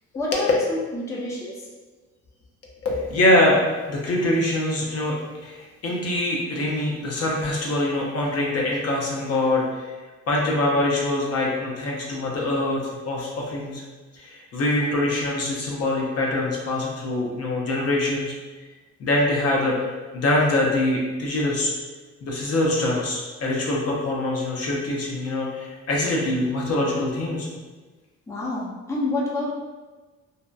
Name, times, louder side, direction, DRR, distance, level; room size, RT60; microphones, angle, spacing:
voice 1, 0.1-1.7 28.3-29.5, left 2 dB, 10° left, -5 dB, 0.5 m, -28 dB
voice 2, 2.8-3.6 3.9-9.9 10.3-13.8 14.1-18.4 19.0-19.8 20.1-21.7 22.2-27.5, left 1 dB, 55° left, -3 dB, 0.6 m, -24 dB
2.7 x 2.1 x 2.3 m, 1.3 s
cardioid pair, 90°, 30 cm